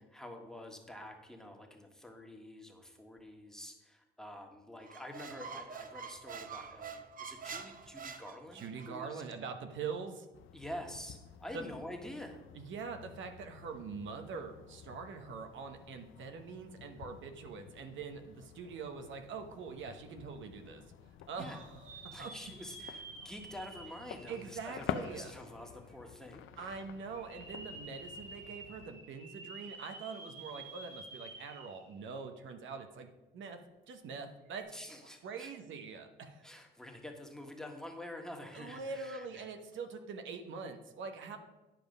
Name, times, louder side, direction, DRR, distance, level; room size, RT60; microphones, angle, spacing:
voice 1, 0.0-9.2 10.5-12.4 21.3-21.6 22.1-26.8 34.7-35.5 36.4-39.5, left 1 dB, 5° left, 2 dB, 1.6 m, -47 dB
Squeak, 4.8-8.9, right 6 dB, 45° right, 0.8 m, -46 dB
voice 2, 8.5-10.3 11.5-11.6 12.5-20.8 21.3-22.3 24.3-25.3 26.6-33.1 33.3-34.7 35.0-36.4 38.5-41.4, right 5 dB, 75° right, 6 dB, 1.0 m, -44 dB
sound 1, 10.3-28.9, left 9 dB, 85° left, 0.6 m, -49 dB
sound 2, 21.4-25.4 25.9-26.0 27.1-32.0 32.4-32.5 34.5-34.6, right 3 dB, 90° right, 3.1 m, -50 dB
10.5 x 5.2 x 5.3 m, 1.1 s
cardioid pair, 90°, 20 cm